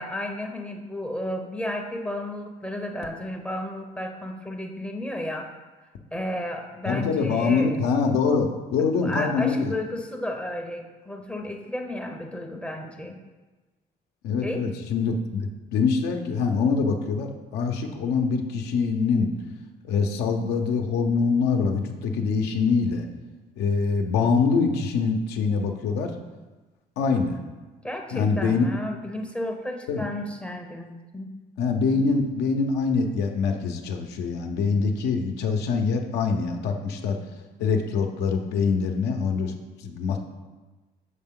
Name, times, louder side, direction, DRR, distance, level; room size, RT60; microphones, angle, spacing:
voice 1, 0.0-5.5 6.1-7.7 8.8-13.2 14.4-14.7 27.8-31.3, left 1 dB, 5° left, 2 dB, 0.5 m, -33 dB
voice 2, 6.9-9.7 14.2-19.3 19.8-23.0 23.6-26.1 27.0-27.4 28.1-28.7 29.9-30.1 31.6-37.2 37.6-39.5 39.8-40.2, left 5 dB, 85° left, 3 dB, 0.7 m, -24 dB
6.6 x 4.3 x 3.7 m, 1.2 s
cardioid pair, 110°, 17 cm